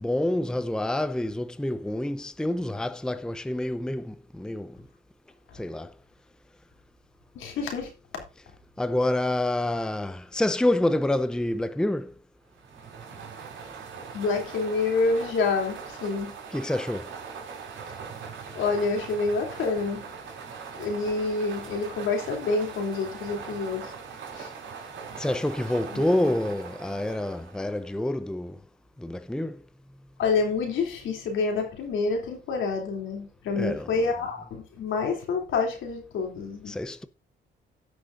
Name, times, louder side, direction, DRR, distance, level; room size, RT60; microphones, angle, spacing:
voice 1, 0.0-4.8 5.5-5.9 8.8-12.1 16.5-17.1 25.2-28.6 29.0-29.6 33.5-33.9 36.7-37.1, left 1 dB, 5° left, 0.6 m, -27 dB
voice 2, 7.3-7.9 14.1-16.3 18.5-20.0 20.8-23.9 24.3-24.5 25.9-26.0 30.2-36.7, left 4 dB, 80° left, 3.1 m, -27 dB
sound 1, 12.5-28.0, right 6 dB, 75° right, 4.0 m, -41 dB
17.0 x 6.3 x 2.6 m
cardioid pair, 90°, 20 cm